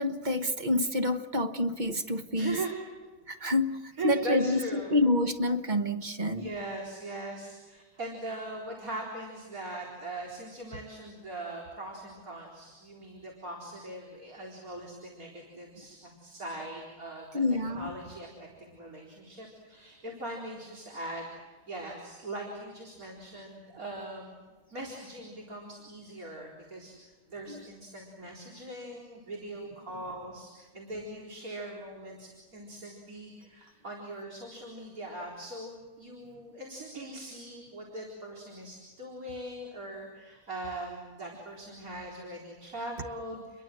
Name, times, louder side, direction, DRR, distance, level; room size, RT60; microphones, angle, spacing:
voice 1, 0.0-2.6 3.3-6.5 17.3-17.9 27.5-27.6, left 2 dB, 30° right, 7 dB, 1.3 m, -28 dB
voice 2, 2.3-2.7 3.4-3.5 4.0-4.9 6.3-17.3 17.7-24.4 24.7-27.0 27.3-43.6, right 2 dB, 65° right, -2 dB, 4.7 m, -40 dB
29.5 x 22.5 x 7.7 m, 1.3 s
omnidirectional pair, 1.6 m